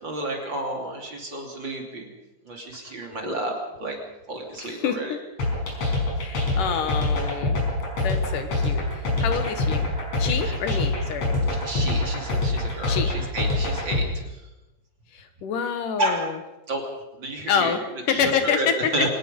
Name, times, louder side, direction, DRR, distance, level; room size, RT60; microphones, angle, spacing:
voice 1, 0.0-2.1 2.4-3.5 3.8-4.0 4.3-5.2 10.4-10.6 11.4-14.4 16.0-16.3 16.7-16.9 17.2-17.8 18.1-19.1, right 1 dB, 35° right, 1 dB, 3.3 m, -31 dB
voice 2, 4.6-5.2 6.2-7.5 8.0-9.9 10.2-11.4 12.9-13.1 15.1-16.3 17.5-18.9, left 7 dB, 70° left, 8 dB, 3.0 m, -27 dB
sound 1, 5.4-14.1, left 2 dB, 55° left, 6.3 m, -24 dB
24.5 x 19.5 x 5.5 m, 0.98 s
omnidirectional pair, 3.9 m